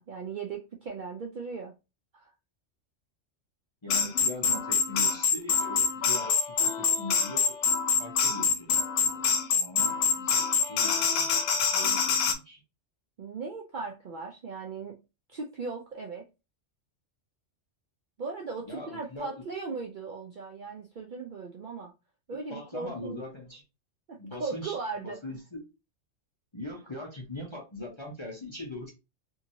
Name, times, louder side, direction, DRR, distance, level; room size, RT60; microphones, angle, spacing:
voice 1, 0.0-1.7 2.1-2.3 13.2-15.0 15.3-16.3 18.2-21.9 22.3-23.2 24.1-25.2, right 4 dB, 60° right, 0.5 m, -38 dB
voice 2, 3.8-7.5 8.0-8.7 9.0-11.3 11.6-12.6 18.7-19.4 22.5-23.6 24.2-25.6 26.5-28.9, left 1 dB, 30° left, 0.6 m, -41 dB
sound 1, 3.9-12.3, left 6 dB, 80° left, 0.9 m, -26 dB
2.8 x 2.7 x 2.6 m
omnidirectional pair, 1.3 m